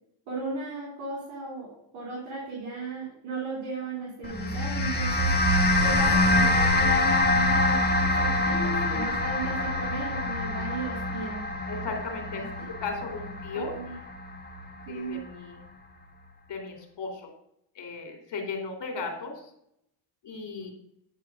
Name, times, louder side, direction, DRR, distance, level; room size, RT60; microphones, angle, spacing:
voice 1, 0.3-5.3 5.8-11.4 12.3-12.4 13.5-13.9 14.8-15.2, right 3 dB, 80° right, -3 dB, 3.3 m, -36 dB
sound 1, 4.2-14.8, left 2 dB, 20° left, 1.7 m, -25 dB
voice 2, 8.4-9.1 11.7-12.4 12.7-13.7 14.9-15.6 16.5-17.3 17.7-19.4 20.2-20.7, left 4 dB, 55° left, 3 dB, 2.8 m, -36 dB
9.6 x 4.5 x 6.1 m, 0.75 s
supercardioid pair, 75°, 50 cm